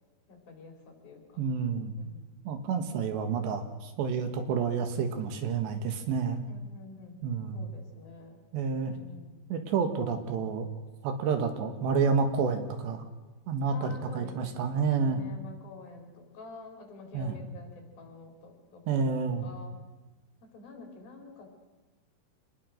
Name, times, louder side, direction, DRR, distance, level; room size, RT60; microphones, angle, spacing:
voice 1, 0.3-1.4 1.9-2.2 6.5-7.2 7.5-8.4 8.8-9.4 13.7-14.6 15.0-19.1 19.4-19.8 20.4-21.5, left 3 dB, 55° left, 2 dB, 5.5 m, -48 dB
voice 2, 1.4-2.0 2.5-6.4 7.2-7.7 8.5-8.9 9.5-10.7 11.0-13.1 13.5-15.2 17.1-17.3 18.9-19.5, right 5 dB, 75° right, 7 dB, 3.8 m, -29 dB
27.0 x 20.0 x 6.5 m, 1.2 s
omnidirectional pair, 5.1 m